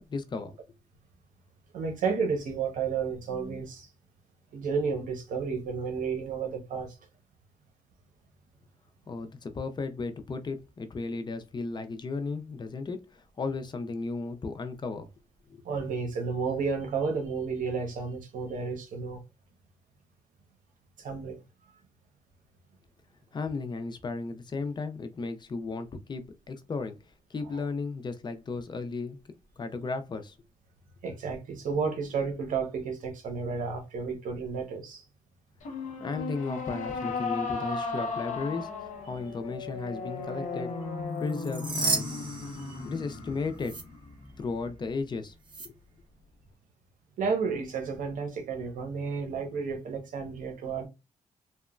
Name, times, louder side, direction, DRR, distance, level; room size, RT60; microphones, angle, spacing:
voice 1, 0.1-0.6 9.1-15.1 15.5-15.6 23.3-29.2 29.6-30.4 36.0-40.7 41.2-42.1 42.8-43.8 44.4-45.3 45.6-45.8, left 4 dB, 35° left, 0.4 m, -35 dB
voice 2, 1.7-3.9 4.5-6.9 15.6-19.2 21.0-21.4 31.0-35.0 47.2-50.9, right 5 dB, 85° right, 0.8 m, -32 dB
sound 1, 35.6-45.0, left 4 dB, 75° left, 0.7 m, -36 dB
sound 2, 41.2-43.2 43.6-43.8 45.5-45.7, right 3 dB, 35° right, 0.8 m, -33 dB
2.9 x 2.1 x 2.3 m
cardioid pair, 105°, 13 cm